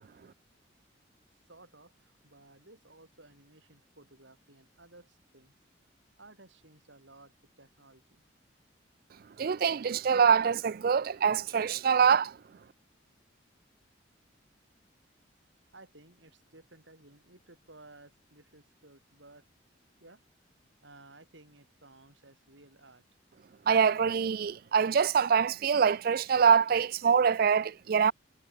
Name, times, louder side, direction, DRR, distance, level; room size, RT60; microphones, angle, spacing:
voice 1, 1.3-5.5 6.2-8.2 15.7-19.4 20.0-20.2 20.8-23.0, right 2 dB, 75° right, 7.8 m, -56 dB
voice 2, 9.4-12.3 23.7-28.1, right 6 dB, 50° right, 0.4 m, -24 dB
head